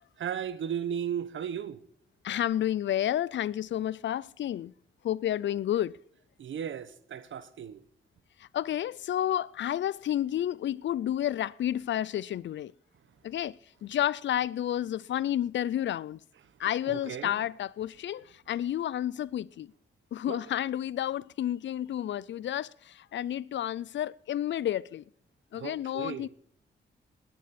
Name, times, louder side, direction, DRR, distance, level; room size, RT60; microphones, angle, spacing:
voice 1, 0.2-1.8 6.4-7.8 16.9-17.4 20.3-20.4 25.5-26.3, right 8 dB, 75° right, 1.0 m, -35 dB
voice 2, 2.2-4.7 5.0-6.0 8.4-12.7 13.2-16.2 16.6-19.7 20.1-25.0 25.5-26.3, left 11 dB, 70° left, 0.4 m, -31 dB
19.5 x 10.5 x 4.3 m
supercardioid pair, 50°, 20 cm